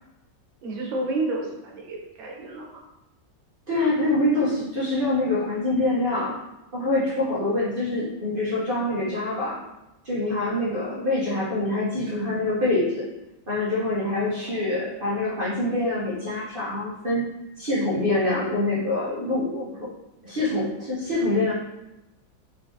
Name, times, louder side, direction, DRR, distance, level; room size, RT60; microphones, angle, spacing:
voice 1, 0.6-2.8 10.5-10.8, right 2 dB, 80° right, 0 dB, 1.5 m, -31 dB
voice 2, 3.7-6.4 6.7-9.6 10.0-13.1 13.5-17.2 17.6-19.7 20.2-21.5, left 2 dB, 40° right, -8 dB, 0.8 m, -25 dB
4.4 x 3.3 x 2.7 m, 0.97 s
omnidirectional pair, 2.0 m